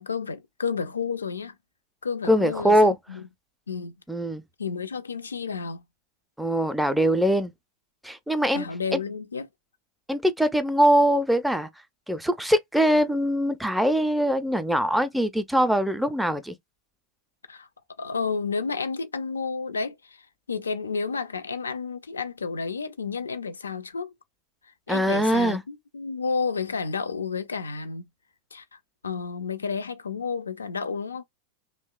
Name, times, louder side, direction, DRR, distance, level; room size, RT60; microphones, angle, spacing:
voice 1, 0.0-1.6 2.0-3.2 3.7-3.9 4.6-5.8 8.5-9.5 17.5-17.7 18.0-20.2 20.5-24.1 24.9-28.1 28.5-28.6 29.0-31.2, left 5 dB, 75° left, 0.3 m, -31 dB
voice 2, 2.3-3.0 4.1-4.4 6.4-7.5 8.0-8.7 8.9-9.0 10.1-11.7 12.1-16.5 24.9-25.6, equal, ahead, 0.4 m, -22 dB
2.8 x 2.0 x 2.2 m
figure-of-eight pair, 90°, 0 cm